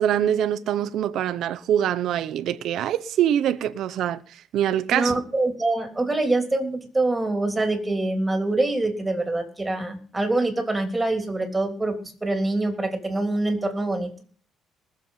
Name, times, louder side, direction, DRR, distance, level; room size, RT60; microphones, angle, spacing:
voice 1, 0.0-5.1, right 10 dB, 70° right, 0.8 m, -24 dB
voice 2, 4.9-14.1, right 2 dB, 10° right, 3.4 m, -25 dB
20.0 x 7.4 x 5.7 m
cardioid pair, 130°, 0 cm